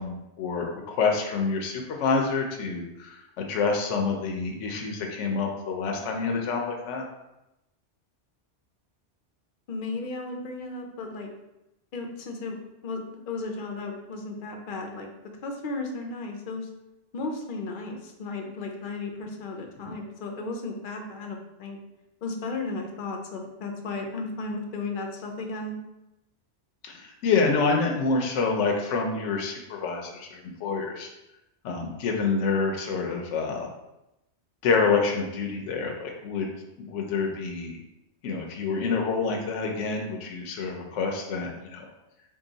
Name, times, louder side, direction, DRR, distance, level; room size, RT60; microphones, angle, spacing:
voice 1, 0.0-7.0 19.8-20.0 26.8-31.1 31.6-33.7 34.6-36.5 36.8-37.8 38.2-41.9, left 4 dB, 80° left, 1 dB, 0.9 m, -27 dB
voice 2, 9.7-11.3 11.9-15.1 15.4-16.7 17.1-21.8 22.2-25.7, left 3 dB, 55° left, 3 dB, 0.7 m, -34 dB
3.7 x 2.3 x 3.9 m, 0.90 s
omnidirectional pair, 1.2 m